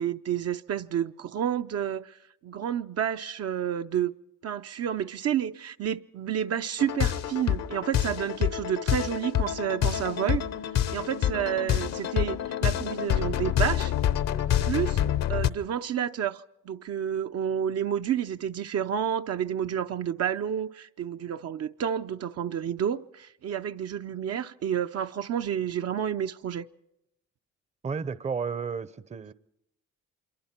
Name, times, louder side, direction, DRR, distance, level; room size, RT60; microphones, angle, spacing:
voice 1, 0.0-2.2 2.4-4.1 4.4-10.4 10.7-13.9 14.6-15.0 15.3-26.7, right 9 dB, 55° right, 0.7 m, -30 dB
sound 1, 6.8-15.5, left 10 dB, 60° left, 0.9 m, -27 dB
voice 2, 27.8-29.3, right 5 dB, 25° right, 0.7 m, -32 dB
26.0 x 23.0 x 4.5 m
cardioid pair, 95°, 30 cm